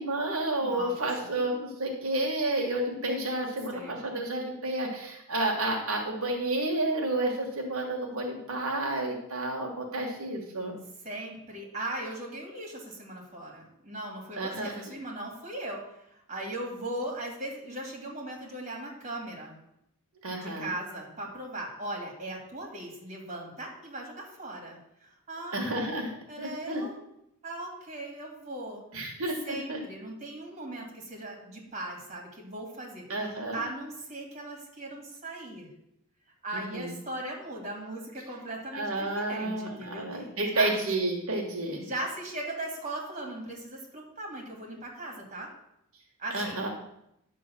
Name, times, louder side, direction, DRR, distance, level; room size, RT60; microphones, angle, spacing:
voice 1, 0.0-10.7 14.4-14.7 20.2-20.7 25.5-26.8 28.9-29.8 33.1-33.6 36.5-36.9 38.7-41.8 46.3-46.7, right 2 dB, 80° right, 0 dB, 1.5 m, -31 dB
voice 2, 0.6-0.9 1.2-1.3 3.7-4.0 11.0-15.8 16.3-19.6 20.4-25.6 26.3-27.0 27.4-28.8 29.4-33.0 33.3-35.7 36.4-40.7 41.8-45.5 46.2-46.6, right 1 dB, 30° right, -1 dB, 2.8 m, -38 dB
10.5 x 3.8 x 7.4 m, 0.80 s
head